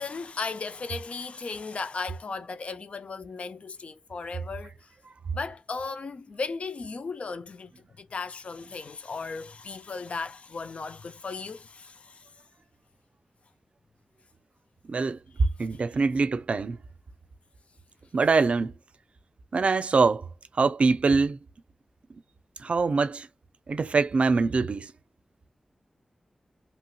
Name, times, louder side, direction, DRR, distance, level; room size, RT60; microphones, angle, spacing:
voice 1, 0.0-4.9 5.3-7.7 8.0-12.3 15.4-15.8, left 4 dB, 70° left, 0.4 m, -36 dB
voice 2, 14.9-15.2 15.6-16.8 18.1-18.8 19.5-20.3 20.6-21.4 22.6-23.3 23.7-24.9, right 4 dB, 70° right, 0.4 m, -24 dB
3.0 x 2.9 x 2.2 m
wide cardioid pair, 75°, 2 cm